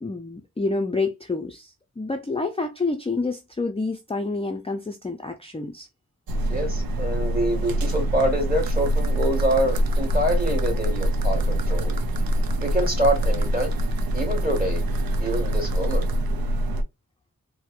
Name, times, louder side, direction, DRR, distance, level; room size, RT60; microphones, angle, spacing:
voice 1, 0.0-5.9, left 3 dB, 15° left, 0.4 m, -28 dB
sound 1, 6.3-16.8, right 1 dB, 90° right, 0.5 m, -24 dB
voice 2, 6.5-11.9 12.6-13.7 14.1-14.8 15.2-16.1, right 1 dB, 25° right, 1.8 m, -26 dB
4.3 x 2.1 x 2.4 m
wide cardioid pair, 65°, 34 cm